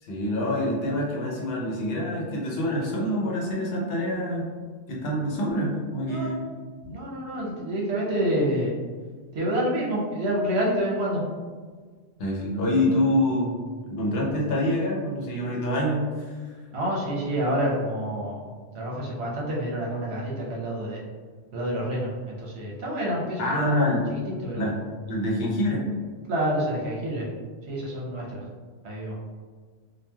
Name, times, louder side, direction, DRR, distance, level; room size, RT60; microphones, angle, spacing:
voice 1, 0.0-4.5 4.9-6.4 12.2-13.5 13.9-16.5 23.4-24.1 24.6-24.8 25.1-25.9, left 1 dB, 65° left, -3 dB, 0.9 m, -26 dB
voice 2, 6.8-8.7 9.3-11.2 16.7-21.0 21.5-23.7 24.1-24.7 26.3-27.2 27.7-28.4 28.8-29.2, equal, 70° right, -4 dB, 1.0 m, -28 dB
3.0 x 2.3 x 2.2 m, 1.5 s
omnidirectional pair, 1.2 m